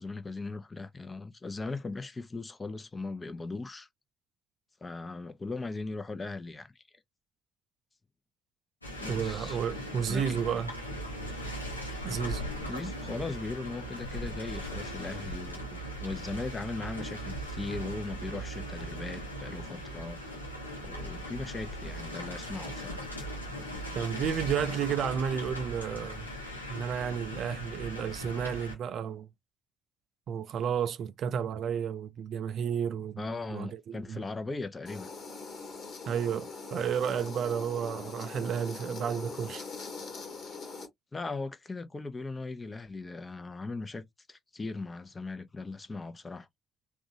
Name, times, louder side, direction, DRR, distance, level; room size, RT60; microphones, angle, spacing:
voice 1, 0.0-3.9 4.8-6.7 9.0-9.6 10.1-10.4 12.7-20.4 20.8-23.1 33.2-35.1 41.1-46.5, left 3 dB, 25° left, 0.8 m, -38 dB
sound 1, 8.8-28.8, equal, 90° left, 0.8 m, -39 dB
voice 2, 9.1-10.7 12.0-12.4 23.9-26.3 26.7-29.3 30.3-34.2 36.1-39.7, right 8 dB, 50° right, 0.4 m, -32 dB
sound 2, 34.9-40.9, left 4 dB, 45° left, 1.4 m, -42 dB
3.7 x 2.4 x 2.7 m
figure-of-eight pair, 50°, 0 cm